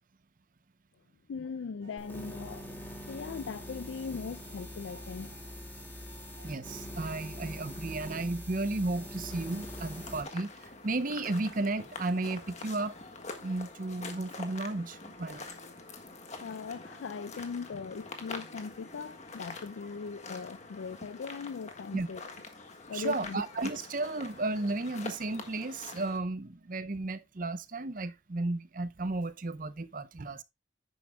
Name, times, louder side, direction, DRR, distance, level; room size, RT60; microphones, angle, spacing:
voice 1, 1.3-5.3 16.4-22.2 22.9-23.4, left 5 dB, 70° left, 0.4 m, -40 dB
sound 1, 1.8-2.7 3.0-12.0, right 4 dB, 70° right, 2.8 m, -60 dB
sound 2, 2.0-10.2, equal, 10° left, 2.1 m, -43 dB
voice 2, 6.4-13.0 13.4-15.5 21.9-22.1 22.9-30.4, right 2 dB, 40° right, 0.7 m, -34 dB
sound 3, 9.3-26.2, left 3 dB, 35° left, 1.5 m, -46 dB
10.5 x 9.4 x 2.2 m
head